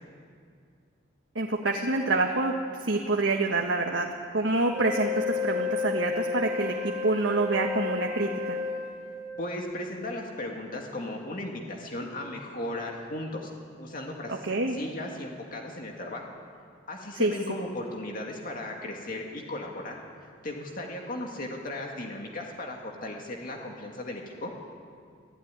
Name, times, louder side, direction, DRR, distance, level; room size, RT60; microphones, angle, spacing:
voice 1, 1.3-4.1 4.3-8.6 14.3-14.7 17.1-17.3, right 2 dB, 70° right, 2 dB, 1.5 m, -27 dB
Wind instrument woodwind instrument, 4.7-9.5, left 5 dB, 45° right, 3.1 m, -32 dB
voice 2, 9.4-13.5 13.8-16.3 16.9-20.0 20.4-24.5, left 1 dB, 45° left, 0 dB, 2.1 m, -36 dB
24.5 x 14.5 x 9.9 m, 2.3 s
head